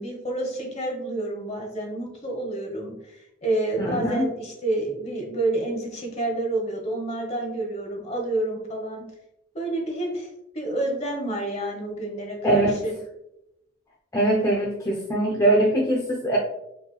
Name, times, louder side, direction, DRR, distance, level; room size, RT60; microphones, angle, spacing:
voice 1, 0.0-9.0 9.5-10.3 10.5-12.9, right 2 dB, 35° left, 1 dB, 1.0 m, -29 dB
voice 2, 3.8-4.3 12.4-12.8 14.1-16.4, right 1 dB, 15° left, -4 dB, 0.5 m, -22 dB
4.9 x 3.1 x 2.2 m, 0.85 s
head